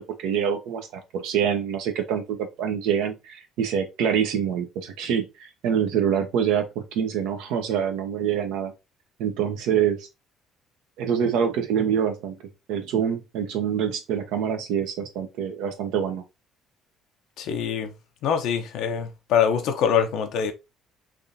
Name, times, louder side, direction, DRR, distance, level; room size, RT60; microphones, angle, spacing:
voice 1, 0.2-8.7 9.2-10.1 11.0-12.4 12.7-16.2, right 8 dB, 85° right, 0.8 m, -25 dB
voice 2, 17.4-17.9 18.2-20.5, left 7 dB, 75° left, 0.6 m, -24 dB
3.4 x 2.5 x 2.6 m
cardioid pair, 90°, 0 cm